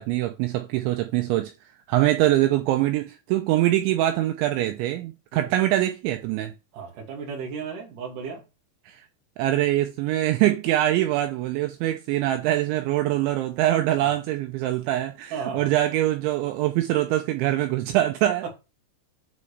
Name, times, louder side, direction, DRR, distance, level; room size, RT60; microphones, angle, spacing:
voice 1, 0.0-1.5 1.9-6.5 8.9-9.0 9.4-18.5, right 14 dB, 80° right, 2.8 m, -23 dB
voice 2, 6.7-8.4 14.0-14.1 15.3-15.7 18.4-18.5, right 6 dB, 50° right, 3.4 m, -34 dB
8.6 x 4.4 x 3.3 m
omnidirectional pair, 5.7 m